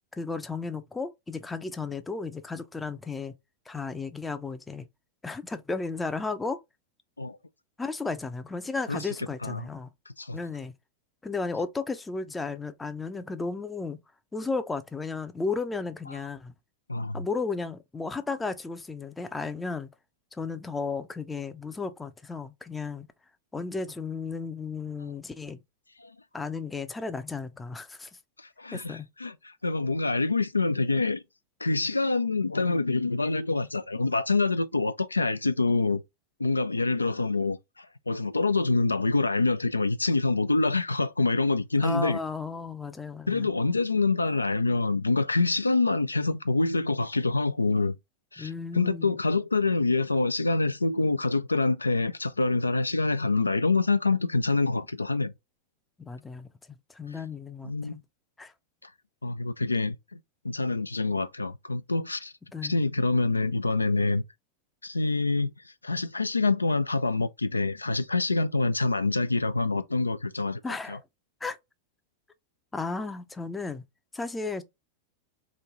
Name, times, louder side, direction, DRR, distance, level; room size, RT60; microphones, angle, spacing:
voice 1, 0.1-3.3 3.7-4.9 5.2-6.6 7.8-9.9 10.3-10.7 11.2-14.0 14.3-16.5 17.1-19.9 20.3-23.1 23.5-25.6 26.3-28.1 28.7-29.1 41.8-43.5 48.4-49.1 56.0-58.0 58.4-58.5 62.5-62.8 70.6-71.0 71.4-71.6 72.7-73.8 74.1-74.6, left 4 dB, 10° left, 0.5 m, -34 dB
voice 2, 10.1-10.4 16.9-17.2 26.0-26.1 28.4-31.2 31.6-36.0 36.4-42.2 43.3-48.0 48.3-55.3 57.6-58.0 58.8-58.9 59.2-60.2 60.4-62.3 62.6-64.2 64.8-65.5 65.8-70.6 70.9-71.0, left 3 dB, 80° left, 0.3 m, -26 dB
3.1 x 2.6 x 3.5 m
figure-of-eight pair, 90°, 0 cm